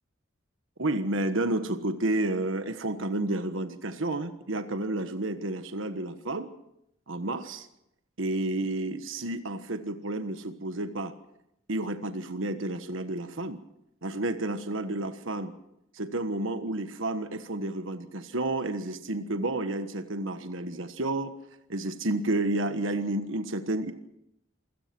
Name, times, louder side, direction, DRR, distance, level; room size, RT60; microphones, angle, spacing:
voice 1, 0.8-6.5 7.1-7.7 8.2-11.1 11.7-13.6 14.0-15.5 15.9-21.3 21.7-23.9, right 2 dB, 70° right, 9 dB, 1.4 m, -31 dB
26.5 x 17.0 x 6.1 m, 0.81 s
head